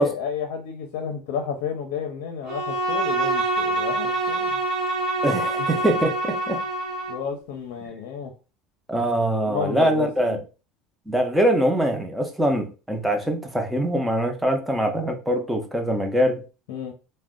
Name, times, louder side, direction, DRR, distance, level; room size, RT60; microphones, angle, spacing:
voice 1, 0.0-4.5 7.1-8.3 9.4-10.4 16.7-16.9, left 7 dB, 75° left, 0.6 m, -31 dB
Bowed string instrument, 2.5-7.3, right 2 dB, 55° right, 0.9 m, -25 dB
voice 2, 5.2-6.6 8.9-10.4 11.1-16.4, right 1 dB, 5° right, 0.6 m, -23 dB
2.5 x 2.1 x 3.6 m
supercardioid pair, 115°, 0 cm